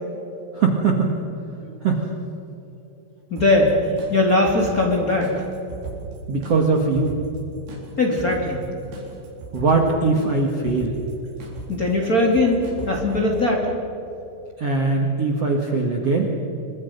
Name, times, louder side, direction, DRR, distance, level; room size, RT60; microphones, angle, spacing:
voice 1, 0.6-1.1 1.8-2.0 6.3-7.2 9.5-11.0 14.6-16.3, right 4 dB, 50° right, 1 dB, 2.1 m, -20 dB
voice 2, 3.3-3.8 4.1-5.4 8.0-8.6 11.7-13.7, left 2 dB, 25° left, -1 dB, 2.6 m, -20 dB
sound 1, 3.4-13.2, right 3 dB, 80° right, 6.2 m, -38 dB
27.0 x 24.0 x 5.3 m, 3.0 s
omnidirectional pair, 5.0 m